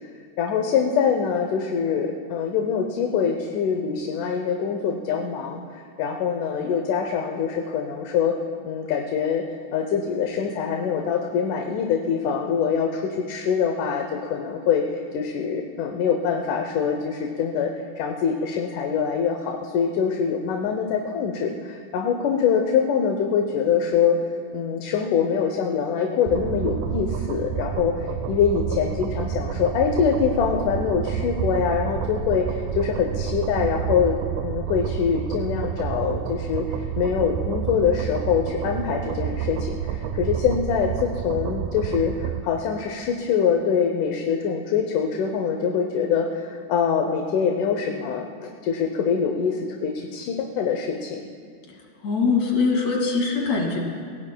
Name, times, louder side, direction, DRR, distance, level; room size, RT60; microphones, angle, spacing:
voice 1, 0.4-8.4 8.6-9.5 9.7-24.2 24.5-34.2 34.4-48.3 48.6-51.2, left 6 dB, 75° left, 3 dB, 2.3 m, -24 dB
sound 1, 26.3-42.4, right 8 dB, 80° right, 2.2 m, -29 dB
voice 2, 52.0-53.8, left 4 dB, 60° left, 0 dB, 3.4 m, -22 dB
27.5 x 17.0 x 2.3 m, 2.2 s
omnidirectional pair, 3.8 m